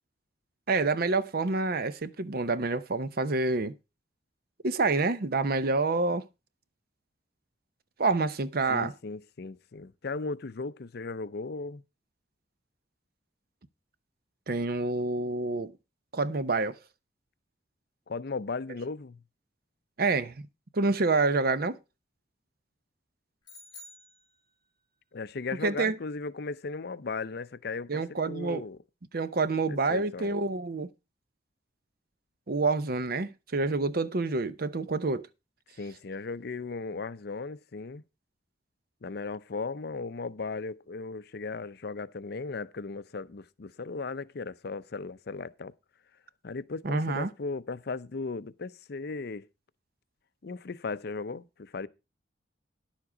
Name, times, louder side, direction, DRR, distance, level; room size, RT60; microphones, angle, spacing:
voice 1, 0.7-3.7 4.6-6.2 8.0-8.9 14.5-15.7 16.1-16.8 20.0-20.5 20.7-21.8 25.6-25.9 27.9-28.6 29.1-30.9 32.5-35.3 46.8-47.3, right 3 dB, 55° right, 0.7 m, -27 dB
voice 2, 8.7-11.8 18.1-19.2 25.1-28.8 29.7-30.3 35.8-38.0 39.0-45.7 46.4-49.5 50.4-51.9, left 4 dB, 60° left, 0.6 m, -37 dB
sound 1, 23.4-24.9, left 2 dB, 25° left, 4.7 m, -51 dB
11.0 x 7.3 x 4.9 m
head